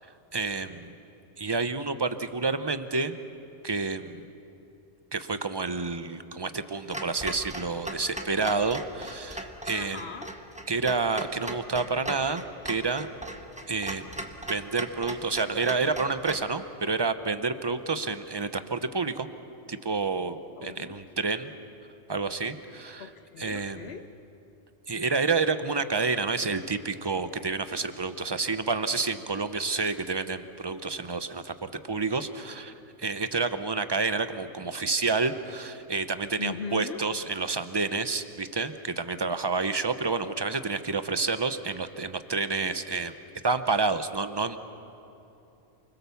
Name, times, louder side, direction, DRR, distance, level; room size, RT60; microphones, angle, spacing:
voice 1, 0.3-0.9 1.4-3.2 3.6-4.3 5.1-10.1 10.7-13.1 13.7-14.1 14.5-19.3 19.7-21.5 22.1-23.1 23.4-23.9 24.9-32.7 33.0-43.1 43.4-44.6, right 4 dB, 25° right, 10 dB, 0.7 m, -29 dB
Clock, 6.9-16.5, right 1 dB, 5° right, 1.2 m, -39 dB
voice 2, 9.7-10.4 20.6-21.0 23.0-24.0 36.4-37.0, left 6 dB, 60° left, 9 dB, 1.0 m, -39 dB
28.5 x 21.0 x 7.1 m, 2.9 s
omnidirectional pair, 1.3 m